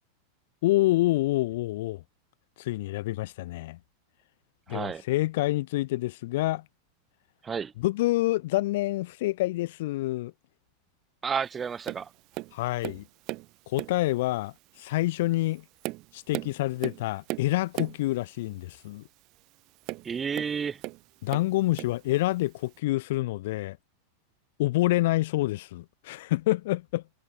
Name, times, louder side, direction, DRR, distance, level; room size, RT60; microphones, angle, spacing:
voice 1, 0.6-2.0 2.6-3.8 4.7-6.6 7.8-10.3 12.5-13.0 13.7-14.5 14.8-15.6 16.1-19.0 21.2-23.8 24.6-27.0, left 17 dB, 55° left, 2.3 m, -27 dB
voice 2, 4.7-5.0 7.4-7.7 11.2-12.1 20.0-20.8, right 6 dB, 20° right, 2.8 m, -31 dB
Tap, 11.8-12.1 12.3-13.5 13.8-14.1 14.8-14.9 15.5-18.0 19.8-21.0 21.3-22.0 22.8-22.9, right 22 dB, 40° right, 2.8 m, -37 dB
figure-of-eight pair, 90°, 0 cm